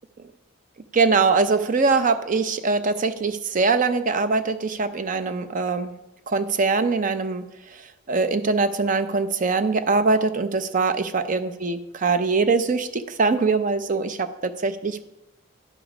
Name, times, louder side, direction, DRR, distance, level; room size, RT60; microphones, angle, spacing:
voice 1, 0.9-5.9 6.3-7.4 8.1-15.1, right 4 dB, 40° right, 10 dB, 0.5 m, -22 dB
10.5 x 5.2 x 4.9 m, 0.93 s
head